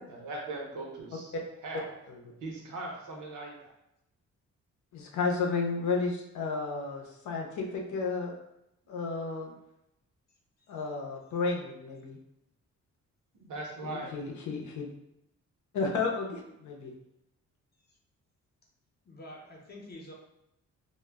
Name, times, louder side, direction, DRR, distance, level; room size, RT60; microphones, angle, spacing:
voice 1, 0.1-1.3 1.6-1.9 2.4-3.7 13.3-14.3, right 2 dB, 75° right, -1 dB, 0.8 m, -40 dB
voice 2, 4.9-8.3 8.9-9.5 10.7-12.2 13.8-14.9 15.7-16.9, left 4 dB, 75° left, 1 dB, 0.6 m, -32 dB
voice 3, 19.0-20.1, left 1 dB, 35° left, -1 dB, 0.6 m, -47 dB
2.1 x 2.0 x 3.4 m, 0.83 s
cardioid pair, 125°, 30 cm